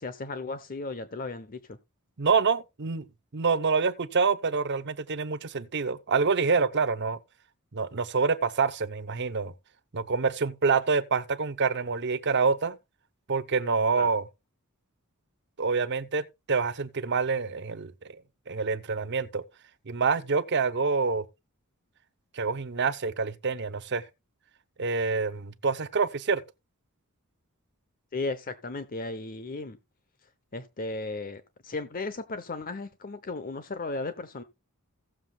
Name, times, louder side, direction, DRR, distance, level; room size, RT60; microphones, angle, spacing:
voice 1, 0.0-1.8 14.0-14.1 28.1-29.8 30.5-34.4, left 3 dB, 40° left, 0.8 m, -35 dB
voice 2, 2.2-3.0 3.3-7.2 7.7-9.5 9.9-12.8 13.3-14.2 15.6-18.2 18.5-19.4 19.9-21.2 22.3-24.0 24.8-26.4, right 5 dB, 55° right, 0.8 m, -27 dB
16.5 x 7.5 x 2.3 m
head